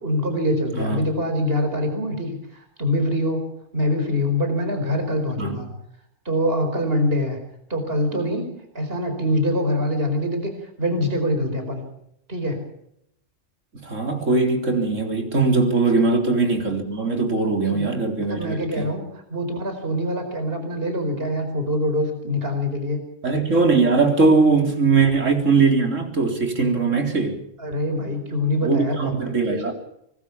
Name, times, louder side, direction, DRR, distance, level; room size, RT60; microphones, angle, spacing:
voice 1, 0.0-5.7 6.2-7.4 7.7-10.5 10.8-11.8 12.3-12.6 15.9-16.0 17.6-17.9 18.3-19.0 19.3-23.0 27.6-29.7, left 1 dB, 45° right, 5.1 m, -24 dB
voice 2, 0.8-1.1 5.4-5.6 13.8-18.9 23.2-27.3 28.6-29.7, right 4 dB, 70° right, 4.2 m, -20 dB
24.5 x 20.0 x 7.2 m
omnidirectional pair, 1.4 m